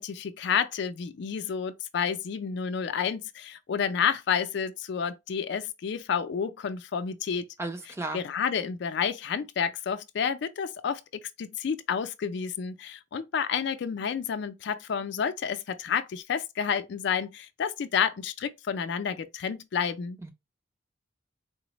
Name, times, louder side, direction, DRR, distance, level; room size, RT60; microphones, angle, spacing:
voice 1, 0.0-7.5 8.1-20.2, left 7 dB, 65° left, 0.4 m, -30 dB
voice 2, 7.6-8.3 20.2-20.3, right 2 dB, 15° right, 0.4 m, -34 dB
3.9 x 2.0 x 2.9 m
head